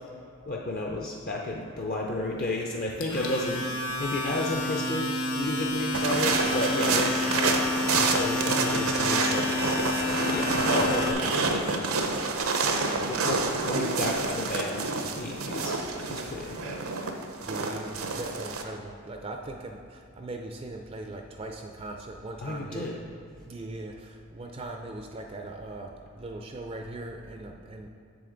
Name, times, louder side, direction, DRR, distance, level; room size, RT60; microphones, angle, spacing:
voice 1, 0.5-12.3 12.9-14.9 15.1-15.8 16.1-16.8 22.4-23.0, left 2 dB, 45° left, -1 dB, 0.5 m, -32 dB
Domestic sounds home sounds, 3.0-11.1, left 2 dB, 70° left, 1.2 m, -30 dB
sound 1, 5.9-18.6, right 4 dB, 80° right, 0.7 m, -28 dB
voice 2, 17.4-23.0 23.4-27.9, right 2 dB, 25° right, 3 dB, 0.4 m, -40 dB
7.7 x 7.1 x 3.8 m, 2.4 s
head